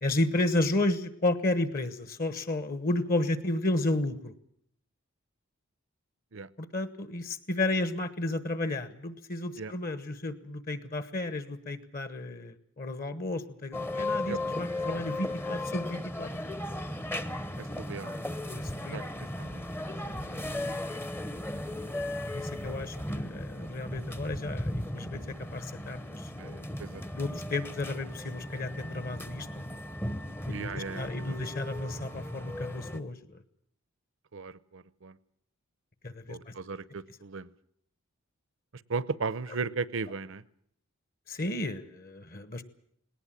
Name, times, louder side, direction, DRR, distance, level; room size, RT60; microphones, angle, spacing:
voice 1, 0.0-4.3 6.6-16.4 18.5-19.1 20.0-20.4 22.2-26.7 27.1-29.5 30.5-33.4 36.0-36.5 41.3-42.6, left 2 dB, 40° left, 13 dB, 1.2 m, -32 dB
sound 1, 13.7-33.0, left 1 dB, 10° left, 0.8 m, -36 dB
voice 2, 17.6-18.3 18.9-19.7 26.4-27.0 30.5-31.5 34.3-35.2 36.3-37.5 38.9-40.4, right 4 dB, 60° right, 18 dB, 0.8 m, -37 dB
19.0 x 19.0 x 8.8 m, 0.68 s
head